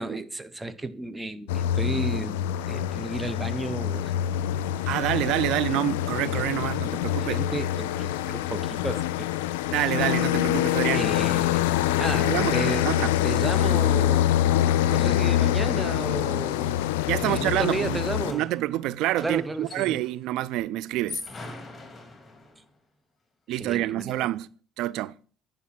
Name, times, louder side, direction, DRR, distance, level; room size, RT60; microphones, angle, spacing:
voice 1, 0.0-4.1 7.2-9.3 10.9-11.7 11.9-16.8 17.1-18.5 19.2-20.0 23.5-24.1, right 2 dB, 20° right, 1.0 m, -33 dB
sound 1, 1.5-18.3, left 12 dB, 90° left, 0.4 m, -25 dB
voice 2, 4.9-7.4 9.7-11.1 12.2-13.1 17.1-21.2 23.5-24.5 24.8-25.1, right 15 dB, 75° right, 0.4 m, -27 dB
sound 2, 16.2-20.2 20.9-22.7, left 3 dB, 30° left, 2.8 m, -44 dB
9.9 x 5.5 x 5.9 m
hypercardioid pair, 65°, 0 cm